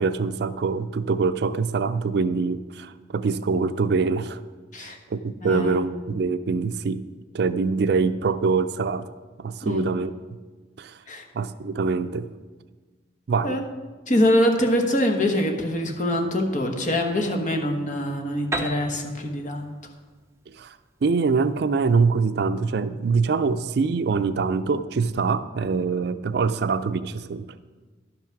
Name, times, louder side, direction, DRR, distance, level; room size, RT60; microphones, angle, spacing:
voice 1, 0.0-4.4 4.8-7.0 7.3-9.1 9.4-10.1 10.8-11.0 11.3-12.3 13.3-13.6 20.5-20.8 21.0-27.5, right 4 dB, 60° right, 12 dB, 0.4 m, -24 dB
voice 2, 5.4-5.9 9.6-9.8 11.1-11.2 13.4-13.7 14.1-19.7, left 1 dB, 45° left, 4 dB, 1.2 m, -24 dB
Piano, 18.5-22.2, right 2 dB, 15° right, 0.7 m, -36 dB
11.5 x 6.0 x 5.8 m, 1.3 s
head